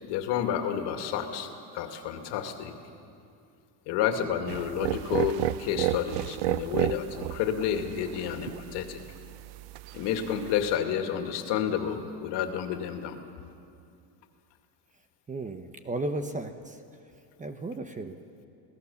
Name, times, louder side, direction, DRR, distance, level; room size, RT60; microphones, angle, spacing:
voice 1, 0.0-2.7 3.9-9.0 9.9-13.2, left 9 dB, 65° left, 5 dB, 2.4 m, -30 dB
sound 1, 4.5-10.7, right 16 dB, 65° right, 0.7 m, -33 dB
voice 2, 15.3-16.8 17.4-18.1, right 2 dB, 15° right, 7 dB, 0.9 m, -34 dB
27.0 x 17.5 x 7.1 m, 2.5 s
cardioid pair, 135°, 46 cm